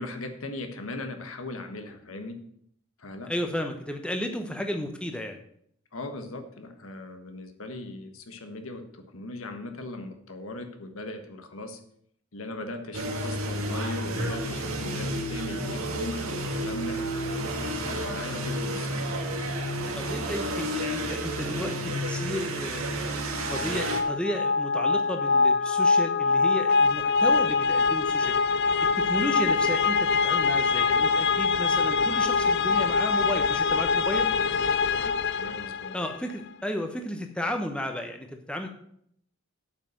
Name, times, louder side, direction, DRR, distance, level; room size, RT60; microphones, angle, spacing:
voice 1, 0.0-2.4 3.0-3.3 5.9-11.8 12.3-17.0 17.6-19.7 20.2-20.6 35.0-36.0, left 2 dB, 80° left, 6 dB, 1.4 m, -39 dB
voice 2, 3.2-5.4 20.0-28.3 29.0-34.3 35.9-38.7, left 1 dB, 5° left, 4 dB, 0.9 m, -33 dB
sound 1, 12.9-24.0, right 1 dB, 85° right, 1.6 m, -31 dB
sound 2, 23.4-36.2, left 4 dB, 50° left, 0.4 m, -24 dB
8.4 x 5.8 x 7.7 m, 0.68 s
head